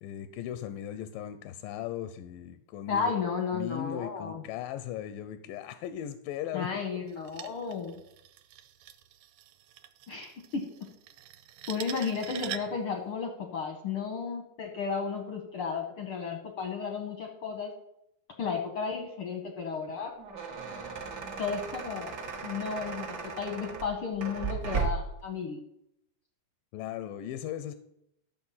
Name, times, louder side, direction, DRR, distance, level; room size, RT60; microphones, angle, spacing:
voice 1, 0.0-3.1 3.5-6.7 26.7-27.7, left 11 dB, 85° left, 11 dB, 2.3 m, -37 dB
voice 2, 2.9-4.4 6.5-8.0 10.1-10.7 11.7-17.7 18.4-20.1 21.4-22.1 22.4-25.6, left 5 dB, 70° left, 3 dB, 1.3 m, -33 dB
sound 1, 7.1-12.9, right 12 dB, 85° right, 2.4 m, -44 dB
sound 2, 20.0-25.2, right 5 dB, 55° right, 1.2 m, -36 dB
12.5 x 7.0 x 5.6 m, 0.81 s
omnidirectional pair, 3.9 m